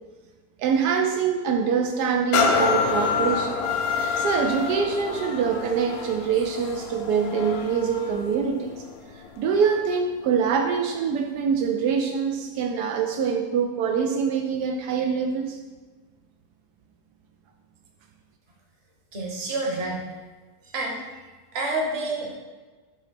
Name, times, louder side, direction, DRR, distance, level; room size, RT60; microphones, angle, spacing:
voice 1, 0.6-3.5 4.0-8.7 9.4-15.6, right 6 dB, 80° right, 3 dB, 1.1 m, -24 dB
sound 1, 2.3-9.9 10.5-10.6, left 5 dB, 70° left, 1.1 m, -27 dB
voice 2, 19.1-20.0 20.7-21.0 21.5-22.4, right 2 dB, 45° right, -1 dB, 1.3 m, -28 dB
6.8 x 2.9 x 5.8 m, 1.4 s
omnidirectional pair, 1.7 m